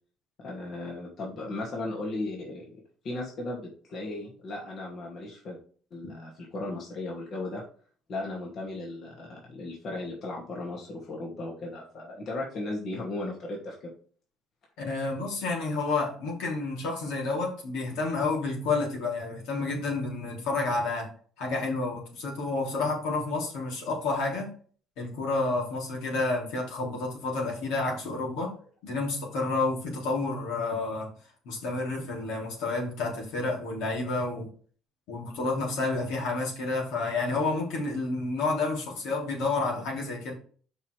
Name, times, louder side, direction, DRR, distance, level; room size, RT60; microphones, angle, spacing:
voice 1, 0.4-2.8 3.0-5.6 5.9-7.6 8.1-13.9, left 2 dB, 50° left, -2 dB, 2.6 m, -36 dB
voice 2, 14.8-21.1 21.4-24.5 25.0-28.5 28.8-31.1 31.5-34.5 35.1-40.3, left 3 dB, 85° left, -2 dB, 3.8 m, -30 dB
5.7 x 5.7 x 4.9 m, 0.43 s
cardioid pair, 120°, 0 cm